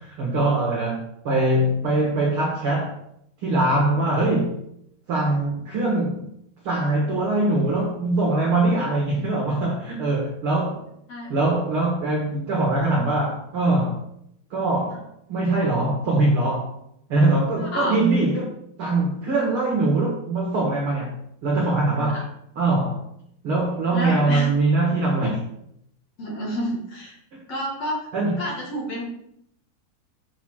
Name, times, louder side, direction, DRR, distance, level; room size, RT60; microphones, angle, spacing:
voice 1, 0.0-2.9 3.4-4.6 5.1-6.3 6.6-10.8 11.3-14.0 14.5-15.0 15.3-16.7 17.1-18.5 18.8-22.2 22.5-23.1 23.4-25.4 28.1-28.4, right 2 dB, 70° right, -2 dB, 1.3 m, -22 dB
voice 2, 17.5-17.9 22.1-22.2 23.9-24.5 26.2-27.1 27.5-28.0 28.4-29.0, equal, 45° left, -4 dB, 2.5 m, -29 dB
7.2 x 4.4 x 6.2 m, 0.74 s
omnidirectional pair, 4.5 m